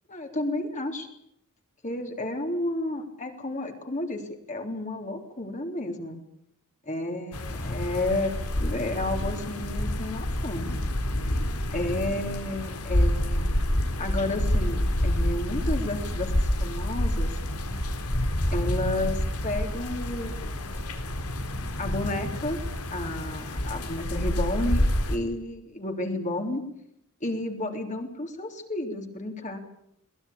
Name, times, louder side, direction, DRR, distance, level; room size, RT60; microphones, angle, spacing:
voice 1, 0.1-1.1 1.8-4.2 4.5-6.2 6.9-8.3 8.6-10.7 11.7-13.5 14.0-16.3 16.6-17.4 18.5-21.2 21.8-22.6 22.9-26.6 27.2-29.6, left 1 dB, 35° left, 3 dB, 3.6 m, -31 dB
sound 1, 7.3-25.2, left 1 dB, 85° left, 4.0 m, -28 dB
22.5 x 19.5 x 8.7 m, 0.74 s
head